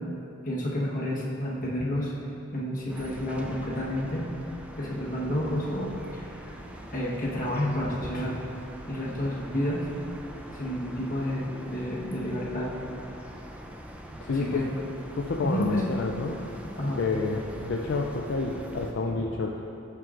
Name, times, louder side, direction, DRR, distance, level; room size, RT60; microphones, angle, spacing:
voice 1, 0.4-2.1 2.5-4.2 4.8-6.2 6.9-8.3 8.8-9.9 10.5-12.7 14.3-14.7 15.4-15.8 16.8-17.0, left 1 dB, 40° left, -5 dB, 1.2 m, -30 dB
sound 1, 2.9-18.9, right 1 dB, 5° right, 0.3 m, -43 dB
voice 2, 14.2-14.6 15.2-16.4 17.0-19.6, left 3 dB, 60° left, 1 dB, 0.4 m, -29 dB
13.5 x 4.7 x 2.5 m, 2.8 s
head